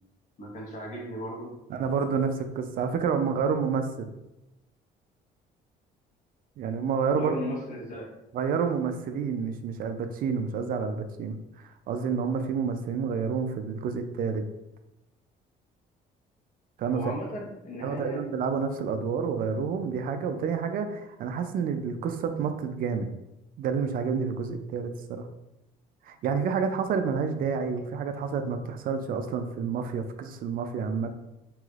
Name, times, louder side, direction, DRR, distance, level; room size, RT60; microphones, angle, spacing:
voice 1, 0.4-1.5 7.2-8.1 16.9-18.3, equal, 45° left, -2 dB, 1.1 m, -36 dB
voice 2, 1.7-4.1 6.6-7.3 8.3-14.4 16.8-17.0 17.8-23.1 23.6-25.3 26.1-31.1, right 6 dB, 60° right, 7 dB, 0.4 m, -29 dB
3.1 x 3.0 x 2.4 m, 0.92 s
cardioid pair, 110°, 17 cm